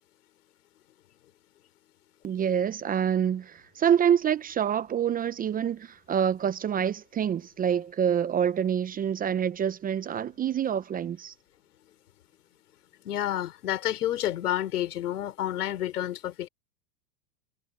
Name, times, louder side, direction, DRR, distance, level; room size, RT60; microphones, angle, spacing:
voice 1, 2.2-11.3, right 8 dB, 20° right, 0.8 m, -26 dB
voice 2, 13.0-16.5, left 12 dB, 80° left, 4.3 m, -29 dB
hypercardioid pair, 125°, 45 cm